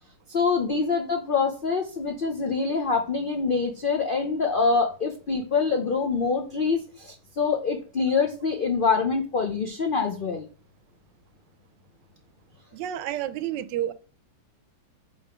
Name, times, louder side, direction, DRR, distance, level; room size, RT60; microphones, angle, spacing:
voice 1, 0.3-10.4, left 5 dB, 85° left, 0.4 m, -25 dB
voice 2, 12.7-13.9, right 11 dB, 90° right, 1.3 m, -30 dB
5.3 x 3.5 x 4.9 m
omnidirectional pair, 1.9 m